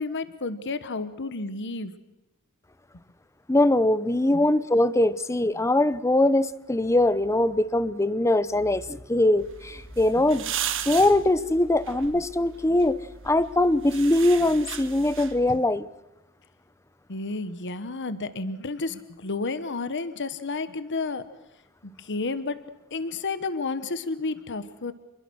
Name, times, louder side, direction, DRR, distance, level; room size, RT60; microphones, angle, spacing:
voice 1, 0.0-1.9 4.3-4.4 15.5-15.6 17.1-21.3 21.8-24.9, left 3 dB, 55° left, 12 dB, 1.2 m, -31 dB
voice 2, 3.5-10.5 10.9-13.0 13.2-15.9, left 1 dB, 15° left, 16 dB, 0.8 m, -22 dB
sound 1, 9.4-15.6, right 9 dB, 60° right, 1.7 m, -37 dB
28.0 x 21.5 x 6.3 m, 0.96 s
head